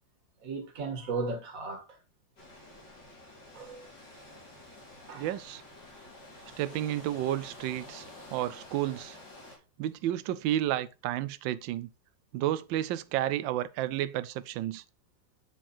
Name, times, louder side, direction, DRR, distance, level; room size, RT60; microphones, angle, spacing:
voice 1, 0.4-2.0 3.5-3.9 5.1-5.3, right 3 dB, 50° right, 2.0 m, -36 dB
sound 1, 2.4-9.6, left 2 dB, 65° left, 3.8 m, -50 dB
voice 2, 5.1-5.6 6.6-9.2 9.8-11.9 12.3-14.8, right 13 dB, 85° right, 1.3 m, -31 dB
8.9 x 4.5 x 4.2 m
omnidirectional pair, 2.0 m